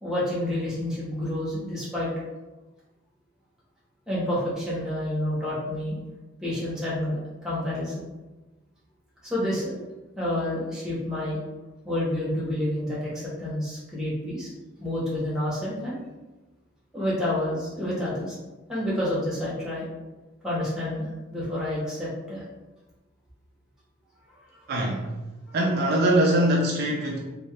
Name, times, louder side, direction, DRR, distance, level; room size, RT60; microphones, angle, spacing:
voice 1, 0.0-2.1 4.1-6.0 6.4-8.0 9.2-9.7 10.2-11.4 11.8-14.5 14.8-16.0 16.9-18.4 18.7-19.9 20.4-22.4 25.5-25.6, left 1 dB, 5° right, -8 dB, 0.8 m, -29 dB
voice 2, 24.7-25.1 25.5-27.2, right 1 dB, 50° right, -2 dB, 0.4 m, -22 dB
2.8 x 2.2 x 3.1 m, 1.1 s
head